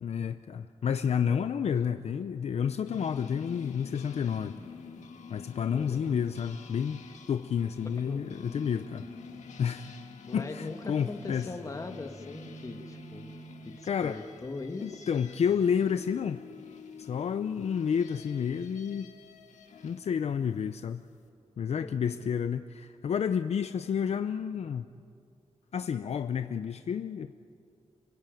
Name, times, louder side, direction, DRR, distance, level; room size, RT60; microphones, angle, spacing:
voice 1, 0.0-4.6 5.3-7.0 7.3-9.1 9.6-9.9 10.3-11.5 13.9-14.2 14.8-16.4 17.0-19.1 19.8-21.0 21.6-24.8 25.7-27.3, left 7 dB, 65° left, 10 dB, 0.6 m, -30 dB
sound 1, 2.9-20.0, left 6 dB, 90° left, 1.8 m, -48 dB
voice 2, 5.7-6.1 8.0-8.2 10.3-13.4 13.7-15.1 21.8-22.3, left 3 dB, 30° left, 5 dB, 1.7 m, -41 dB
sound 2, 8.3-14.3, right 3 dB, 35° right, 1.7 m, -49 dB
29.5 x 17.0 x 9.1 m, 2.4 s
wide cardioid pair, 125°, 12 cm